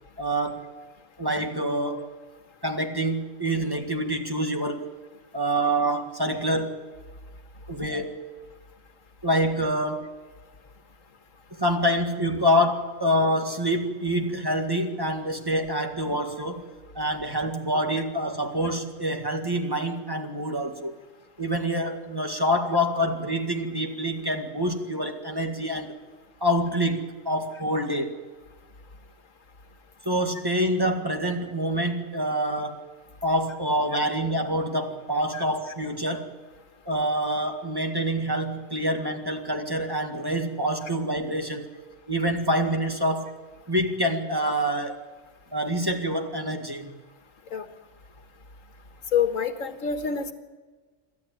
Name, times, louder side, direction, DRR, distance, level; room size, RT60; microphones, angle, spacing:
voice 1, 0.2-0.7 1.2-2.1 2.6-4.9 5.3-6.8 7.7-8.2 9.2-10.1 11.5-20.9 21.4-26.0 26.4-28.2 30.1-32.9 33.2-36.3 36.9-41.7 42.1-43.3 43.7-45.0 45.5-46.9, equal, 20° right, 3 dB, 2.0 m, -26 dB
voice 2, 49.1-50.3, left 7 dB, 85° left, 8 dB, 1.8 m, -26 dB
27.0 x 13.0 x 9.2 m, 1.4 s
omnidirectional pair, 1.3 m